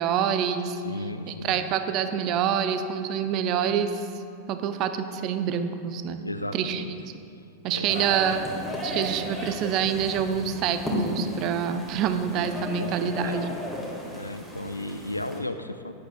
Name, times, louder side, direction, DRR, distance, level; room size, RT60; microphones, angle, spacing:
voice 1, 0.0-0.8 1.3-4.1 4.5-6.2 6.5-6.8 7.6-8.4 8.8-13.4, right 8 dB, 40° right, 9 dB, 0.5 m, -26 dB
voice 2, 0.8-1.5 6.2-6.9 7.7-8.3 12.8-13.6 14.1-15.9, left 1 dB, 85° left, 10 dB, 0.4 m, -35 dB
sound 1, 7.9-15.4, equal, ahead, 1.8 m, -34 dB
11.0 x 9.4 x 2.3 m, 2.5 s
figure-of-eight pair, 90°, 0 cm